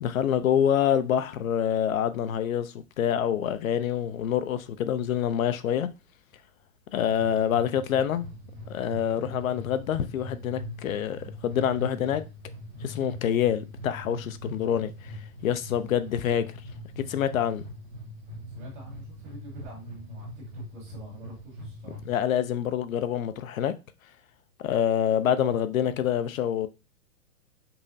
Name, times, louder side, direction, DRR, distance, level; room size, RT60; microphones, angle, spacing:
voice 1, 0.0-5.9 6.9-8.3 8.7-12.2 12.8-15.1 15.4-16.5 17.1-17.6 22.0-23.7 24.6-26.7, left 9 dB, 65° left, 0.6 m, -26 dB
sound 1, 7.0-22.1, left 1 dB, 15° right, 0.5 m, -41 dB
voice 2, 18.5-20.3 20.5-22.0, right 2 dB, 30° right, 1.7 m, -47 dB
5.4 x 2.0 x 2.6 m
hypercardioid pair, 165°, 44 cm